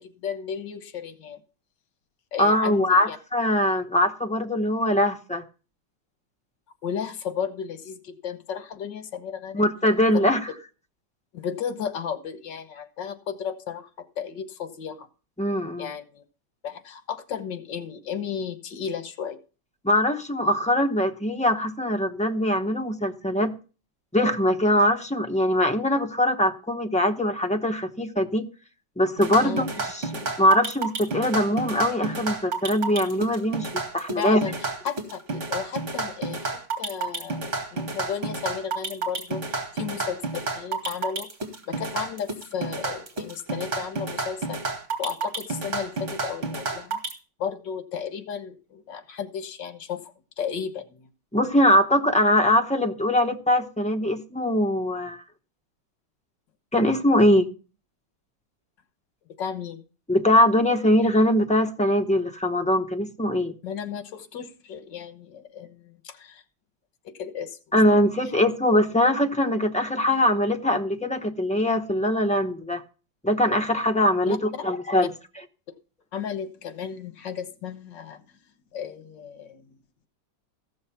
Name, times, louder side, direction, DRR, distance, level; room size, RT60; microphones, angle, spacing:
voice 1, 0.0-1.4 2.3-3.2 6.8-9.7 10.1-10.2 11.3-15.1 15.8-16.2 16.6-19.4 29.4-29.7 34.2-34.6 34.8-41.3 41.7-44.6 45.0-47.0 47.4-51.1 59.4-59.8 63.6-66.4 67.1-67.6 74.3-74.4 76.1-78.2 78.7-79.7, left 7 dB, 80° left, 1.9 m, -34 dB
voice 2, 2.4-5.4 9.5-10.5 15.4-15.9 19.8-23.5 24.1-28.5 29.0-33.7 33.9-34.4 51.3-55.2 56.7-57.5 60.1-63.5 67.7-72.8 73.2-75.1, left 1 dB, 10° left, 0.4 m, -22 dB
sound 1, 29.2-47.1, right 3 dB, 40° right, 2.3 m, -30 dB
15.0 x 6.4 x 5.7 m
omnidirectional pair, 1.9 m